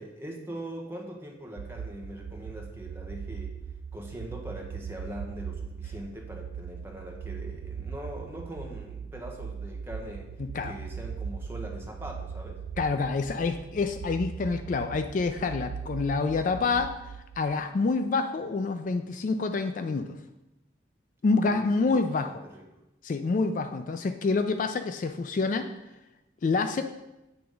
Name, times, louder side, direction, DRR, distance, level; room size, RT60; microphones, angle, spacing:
voice 1, 0.0-3.5 3.9-10.3 10.6-12.6 21.3-22.6 24.4-24.5, equal, 15° right, 0 dB, 0.9 m, -42 dB
sound 1, 1.6-17.5, right 6 dB, 80° right, 0.3 m, -39 dB
voice 2, 10.4-10.7 12.8-16.9 17.4-20.2 21.2-22.4 23.0-25.7 26.4-26.8, left 4 dB, 45° left, 8 dB, 0.3 m, -27 dB
7.9 x 3.4 x 5.1 m, 0.97 s
head